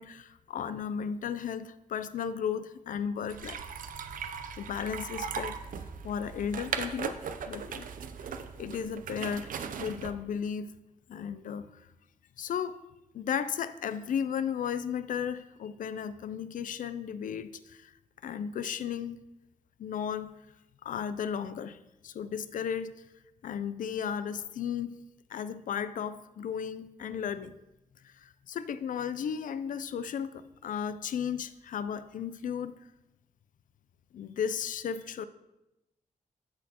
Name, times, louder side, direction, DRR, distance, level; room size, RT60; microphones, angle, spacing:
voice 1, 0.0-3.6 4.6-5.6 6.0-7.9 8.2-8.3 8.6-9.5 9.8-10.7 11.1-11.9 12.4-12.8 13.1-17.9 18.2-19.2 19.8-20.3 20.8-21.8 22.0-22.9 23.4-27.6 28.0-32.8 34.1-35.3, left 7 dB, 75° left, 0.4 m, -35 dB
sound 1, 3.3-10.1, right 6 dB, 80° right, 0.5 m, -38 dB
13.0 x 4.3 x 2.9 m
wide cardioid pair, 145°, 14 cm